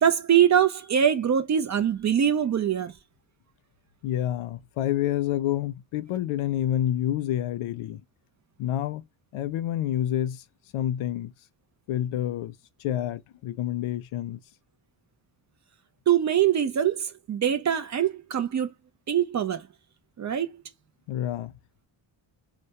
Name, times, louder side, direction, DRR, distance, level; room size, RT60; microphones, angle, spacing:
voice 1, 0.0-2.9 16.1-18.7 19.1-19.6 20.2-20.5, right 9 dB, 40° right, 0.4 m, -23 dB
voice 2, 4.0-8.0 8.6-9.0 9.3-10.4 10.7-11.3 11.9-12.5 12.8-14.4 21.1-21.5, left 12 dB, 85° left, 0.6 m, -28 dB
2.2 x 2.1 x 2.7 m
cardioid pair, 105°, 48 cm